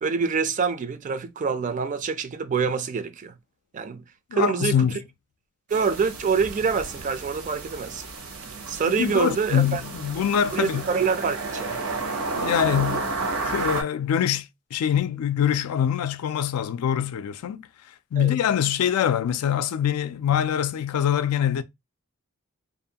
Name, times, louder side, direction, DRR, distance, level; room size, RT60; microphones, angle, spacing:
voice 1, 0.0-3.3 3.7-4.0 4.3-4.9 5.7-8.0 8.7-9.8 10.5-11.8 18.2-18.3, right 5 dB, 35° right, 0.4 m, -26 dB
voice 2, 4.3-5.0 8.9-10.8 12.4-13.0 13.4-17.6 18.1-21.6, left 9 dB, 85° left, 0.3 m, -24 dB
sound 1, 5.7-13.8, right 3 dB, 75° right, 0.7 m, -32 dB
2.5 x 2.2 x 2.7 m
head